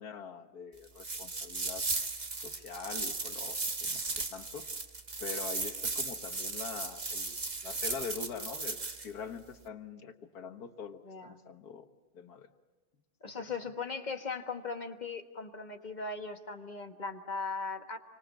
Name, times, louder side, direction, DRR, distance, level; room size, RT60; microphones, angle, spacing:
voice 1, 0.0-1.9 2.4-4.7 5.2-7.4 7.6-11.9 12.1-12.5 13.2-13.5, left 6 dB, 70° left, 7 dB, 1.9 m, -44 dB
sound 1, 1.0-9.1, right 3 dB, 30° right, 1.3 m, -36 dB
voice 2, 11.0-11.3 13.2-18.0, left 4 dB, 30° left, 5 dB, 1.5 m, -38 dB
29.0 x 25.0 x 7.3 m, 1.2 s
omnidirectional pair, 1.7 m